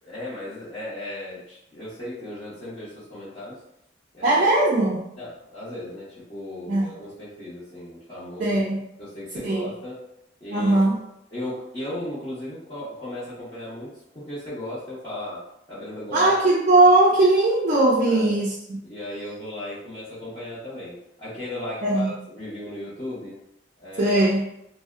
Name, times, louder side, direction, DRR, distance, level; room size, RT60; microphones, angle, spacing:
voice 1, 0.0-3.6 4.1-4.5 5.2-8.6 9.0-10.0 10.4-10.8 11.3-16.3 18.0-18.4 18.8-23.4 23.8-24.2, left 1 dB, 25° left, -14 dB, 0.8 m, -36 dB
voice 2, 4.2-5.1 6.7-6.9 8.4-8.8 9.4-9.7 10.5-11.0 16.1-18.8 21.8-22.1 24.0-24.4, right 2 dB, 45° right, -4 dB, 0.4 m, -19 dB
2.6 x 2.1 x 2.3 m, 0.80 s
head